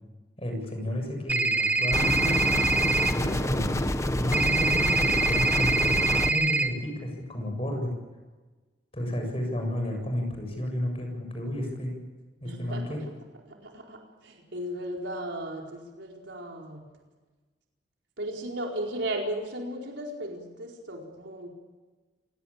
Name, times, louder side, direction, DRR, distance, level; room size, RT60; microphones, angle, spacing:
voice 1, 0.4-2.6 3.1-6.0 6.3-7.9 8.9-11.9 12.4-13.0, left 1 dB, 30° left, 3 dB, 7.5 m, -32 dB
sound 1, 1.3-3.1 4.3-6.7, right 3 dB, 10° right, 2.0 m, -25 dB
sound 2, 1.9-6.3, left 1 dB, 15° left, 1.1 m, -27 dB
voice 2, 12.4-12.8 13.5-16.9 18.2-21.5, right 1 dB, 85° right, 0 dB, 4.6 m, -35 dB
28.5 x 18.5 x 8.9 m, 1.3 s
head